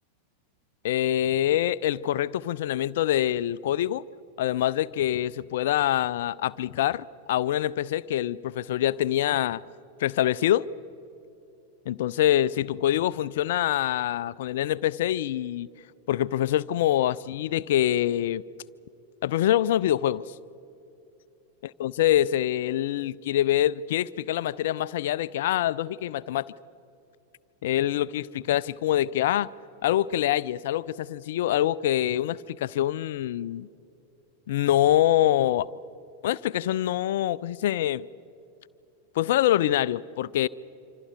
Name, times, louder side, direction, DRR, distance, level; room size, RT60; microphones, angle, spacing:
voice 1, 0.8-4.0 4.4-9.6 10.0-10.7 11.9-15.7 16.1-18.4 19.2-20.3 21.8-26.5 27.6-29.5 29.8-33.7 34.5-35.7 36.2-38.0 39.2-40.5, left 12 dB, 55° left, 0.4 m, -25 dB
26.5 x 26.0 x 4.7 m
figure-of-eight pair, 90°, 0 cm